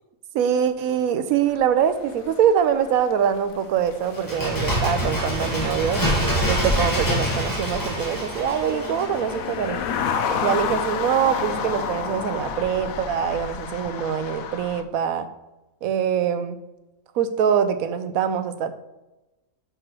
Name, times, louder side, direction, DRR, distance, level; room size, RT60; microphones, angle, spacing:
voice 1, 0.3-6.0 6.4-9.8 10.4-15.3 15.8-16.6 17.1-18.7, right 8 dB, 85° right, 11 dB, 1.1 m, -23 dB
sound 1, 1.5-14.8, left 6 dB, 80° left, 1.0 m, -32 dB
Bird, 4.1-9.7 10.0-10.1, equal, 15° left, 1.5 m, -25 dB
6.7 x 6.0 x 3.1 m, 1.0 s
omnidirectional pair, 1.5 m